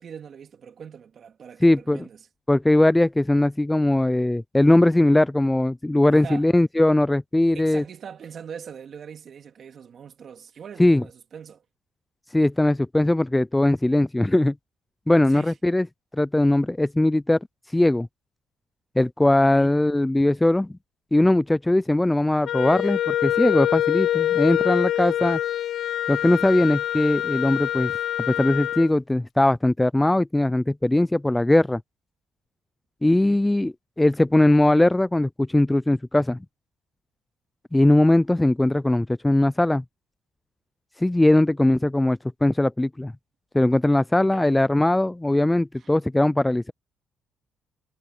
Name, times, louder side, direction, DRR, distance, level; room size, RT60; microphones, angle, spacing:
voice 1, 0.0-2.2 6.1-6.5 7.5-11.6 15.3-15.5 19.5-19.8 33.1-33.4 44.3-44.6 45.7-45.9, right 7 dB, 45° right, 2.6 m, -42 dB
voice 2, 1.6-2.1 2.5-7.8 10.8-11.0 12.3-14.5 15.1-15.9 16.2-17.4 17.7-18.1 19.0-20.7 21.1-25.4 26.1-27.9 28.3-31.8 33.0-36.4 37.7-39.8 41.0-43.1 43.5-46.7, left 1 dB, 10° left, 0.3 m, -20 dB
Wind instrument woodwind instrument, 22.5-28.9, left 12 dB, 60° left, 0.6 m, -25 dB
cardioid pair, 115°, 0 cm